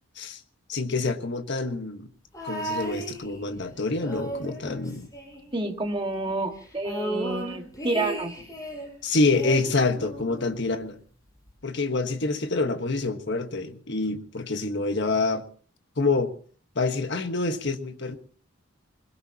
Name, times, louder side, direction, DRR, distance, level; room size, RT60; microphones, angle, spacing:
voice 1, 0.7-2.1 2.4-5.1 9.0-10.9 11.6-15.4 16.0-16.3 16.7-18.2, left 3 dB, 55° left, 1.4 m, -26 dB
sound 1, 2.3-3.6 4.0-5.9 6.1-6.2 6.5-8.9 9.3-10.6 11.5-11.6, right 1 dB, 15° left, 6.1 m, -35 dB
voice 2, 5.5-8.3, right 2 dB, 25° right, 1.8 m, -29 dB
21.5 x 21.0 x 2.9 m
head